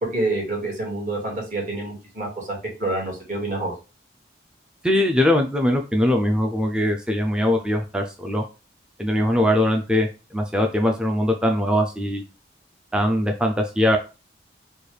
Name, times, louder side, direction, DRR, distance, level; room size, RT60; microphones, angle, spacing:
voice 1, 0.0-3.7, right 2 dB, 45° right, -3 dB, 1.9 m, -27 dB
voice 2, 4.8-8.4 9.0-12.2 12.9-14.0, left 1 dB, 5° right, 2 dB, 0.4 m, -21 dB
4.4 x 2.3 x 3.2 m, 0.31 s
head